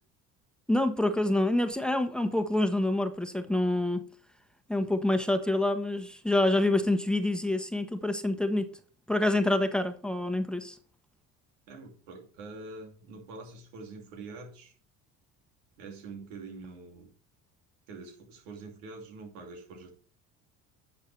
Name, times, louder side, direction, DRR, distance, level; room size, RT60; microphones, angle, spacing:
voice 1, 0.7-4.0 4.7-8.7 9.1-10.8, left 1 dB, ahead, 8 dB, 1.2 m, -27 dB
voice 2, 11.7-14.8 15.8-17.1 17.9-19.9, right 3 dB, 85° right, 3 dB, 2.7 m, -45 dB
10.0 x 6.8 x 3.3 m, 0.43 s
supercardioid pair, 75°, 36 cm